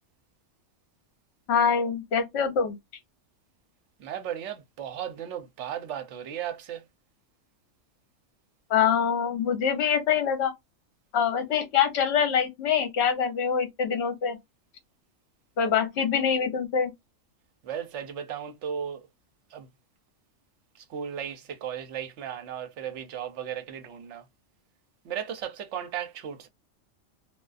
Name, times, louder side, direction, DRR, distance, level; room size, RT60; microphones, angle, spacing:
voice 1, 1.5-2.8 8.7-10.5 11.1-14.4 15.6-16.9, left 7 dB, 60° left, 1.0 m, -24 dB
voice 2, 4.0-6.8 17.6-19.0 19.5-19.7 20.9-24.2 25.0-26.5, right 9 dB, 70° right, 0.9 m, -35 dB
2.4 x 2.3 x 2.3 m
omnidirectional pair, 1.3 m